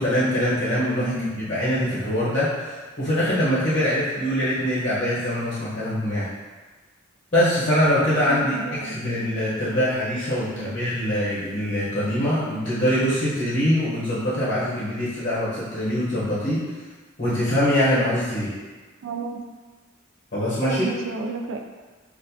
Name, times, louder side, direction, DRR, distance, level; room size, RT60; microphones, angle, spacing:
voice 1, 0.0-6.3 7.3-16.6 17.2-18.5 20.3-20.9, equal, 40° left, -9 dB, 0.9 m, -23 dB
voice 2, 1.0-1.3 8.3-9.0 10.4-10.8 19.0-19.4 20.6-21.6, right 3 dB, 70° right, 3 dB, 0.3 m, -31 dB
4.0 x 2.5 x 2.7 m, 1.3 s
head